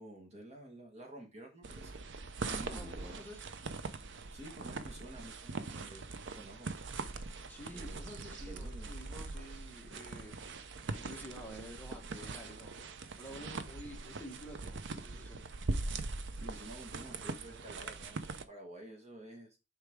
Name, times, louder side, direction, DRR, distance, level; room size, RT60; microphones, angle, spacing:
voice 1, 0.0-2.0 2.4-3.2 4.3-6.7 7.7-8.9 16.3-19.6, right 1 dB, 35° right, 1.6 m, -50 dB
walking in snow in the woods, 1.6-18.4, right 3 dB, 60° right, 0.6 m, -42 dB
voice 2, 2.7-3.4 7.5-10.4 10.9-15.5, equal, 10° left, 1.4 m, -50 dB
6.7 x 4.4 x 3.6 m
head